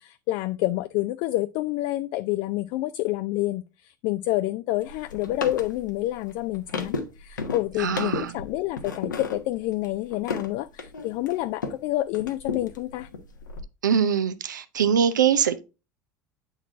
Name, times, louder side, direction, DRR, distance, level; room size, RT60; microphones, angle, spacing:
voice 1, 0.0-13.1, left 16 dB, 55° left, 0.4 m, -28 dB
sound 1, 4.8-11.8 12.1-13.6, left 4 dB, 85° left, 1.0 m, -34 dB
voice 2, 7.8-8.4 13.8-15.6, right 8 dB, 80° right, 0.6 m, -23 dB
8.2 x 4.0 x 3.5 m
hypercardioid pair, 75°, 10 cm